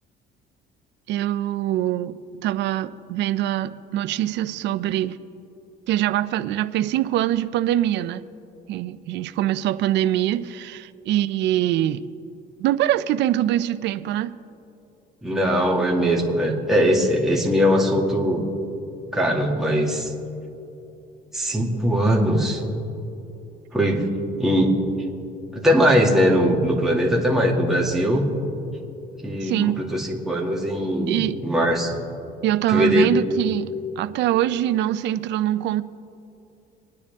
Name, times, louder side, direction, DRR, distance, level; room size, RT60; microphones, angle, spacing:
voice 1, 1.1-2.2 2.4-5.2 5.9-8.3 8.7-12.0 12.6-14.3 29.4-29.8 31.1-31.4 32.4-33.7 34.0-35.8, right 13 dB, 70° right, 0.5 m, -23 dB
voice 2, 15.2-18.4 19.1-20.1 21.3-22.6 23.7-24.1 24.4-24.8 25.5-28.3 29.2-32.0 32.7-33.2, equal, ahead, 2.2 m, -20 dB
27.0 x 10.0 x 3.6 m
cardioid pair, 110°, 19 cm